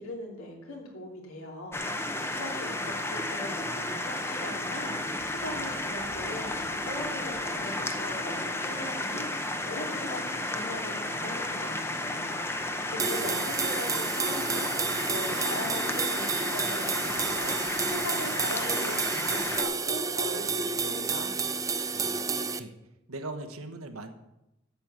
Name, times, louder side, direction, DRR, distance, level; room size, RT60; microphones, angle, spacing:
voice 1, 0.0-17.6 17.9-19.0 19.3-21.3, left 1 dB, 75° left, 0 dB, 3.0 m, -40 dB
sound 1, 1.7-19.6, left 2 dB, 10° left, 0.8 m, -33 dB
voice 2, 12.9-13.3 21.9-22.7 23.1-24.1, right 2 dB, 85° right, 7 dB, 1.3 m, -41 dB
sound 2, 13.0-22.6, right 5 dB, 15° right, 0.4 m, -30 dB
8.7 x 7.9 x 7.5 m, 0.90 s
head